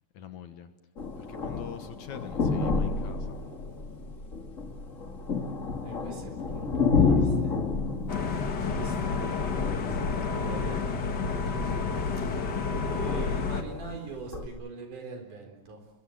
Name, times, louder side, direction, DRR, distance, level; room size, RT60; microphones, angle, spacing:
voice 1, 0.1-0.7 1.2-3.4 8.1-8.5 10.4-11.1 12.3-12.4, left 9 dB, 65° left, 8 dB, 2.5 m, -44 dB
sound 1, 1.0-11.0 11.6-14.5, left 4 dB, 30° left, 1.5 m, -30 dB
voice 2, 5.8-7.6 8.7-11.8 12.2-12.6 12.9-15.9, right 3 dB, 65° right, 4 dB, 5.6 m, -44 dB
sound 2, 8.1-13.6, left 4 dB, 50° left, 1.3 m, -30 dB
29.0 x 22.5 x 7.9 m, 1.1 s
omnidirectional pair, 4.0 m